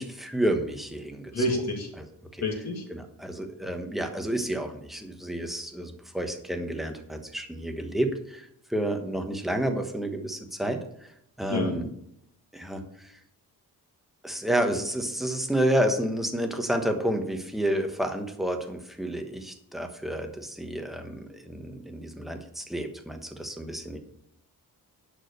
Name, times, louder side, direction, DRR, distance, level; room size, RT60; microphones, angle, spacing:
voice 1, 0.0-1.4 2.0-2.1 2.3-2.4 2.9-11.1 11.4-11.9 12.5-13.1 14.2-24.0, right 1 dB, ahead, 5 dB, 1.2 m, -30 dB
voice 2, 1.3-1.9 2.4-2.8 11.5-11.8, left 1 dB, 45° left, 1 dB, 2.5 m, -28 dB
11.0 x 5.0 x 6.6 m, 0.74 s
wide cardioid pair, 150°, 36 cm